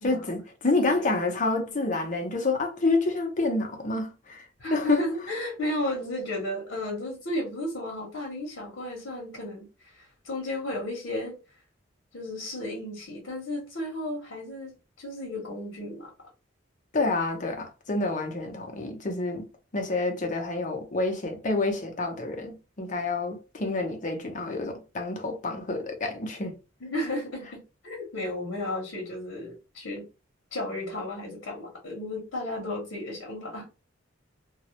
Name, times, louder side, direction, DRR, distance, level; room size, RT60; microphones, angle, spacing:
voice 1, 0.0-5.0 16.9-19.5 19.7-26.5, left 3 dB, 40° left, 0.6 m, -28 dB
voice 2, 4.6-11.4 12.1-16.1 26.8-30.1 30.5-33.7, left 1 dB, 75° left, 0.8 m, -34 dB
2.3 x 2.0 x 2.7 m
head